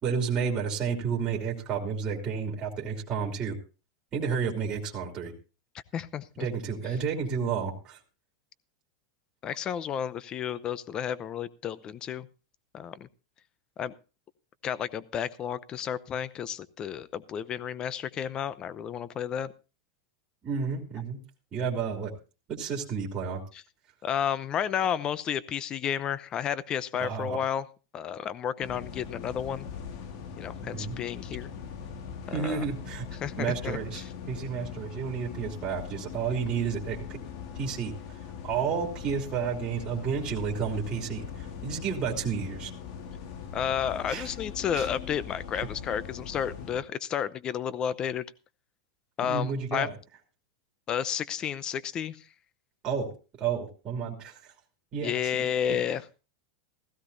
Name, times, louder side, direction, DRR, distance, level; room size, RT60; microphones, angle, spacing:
voice 1, 0.0-3.6 4.1-5.3 6.4-8.0 20.4-21.2 21.5-22.1 22.5-23.4 27.0-27.4 30.7-31.0 32.3-33.1 33.4-37.2 37.5-37.9 38.4-42.7 44.1-44.3 44.7-44.9 45.5-45.7 49.2-49.9 52.8-53.1 53.4-54.5 54.9-55.5, right 6 dB, 25° right, -1 dB, 2.9 m, -31 dB
voice 2, 5.9-6.5 9.4-12.3 12.7-13.1 13.8-13.9 14.6-19.5 24.0-27.7 27.9-29.7 30.4-31.5 32.3-32.7 33.2-34.0 43.5-48.2 49.2-49.9 50.9-52.2 55.0-56.2, left 9 dB, 25° left, 17 dB, 0.7 m, -31 dB
sound 1, 28.6-46.8, left 7 dB, 55° left, 2.1 m, -41 dB
16.5 x 15.0 x 2.7 m, 0.32 s
supercardioid pair, 150°, 3 cm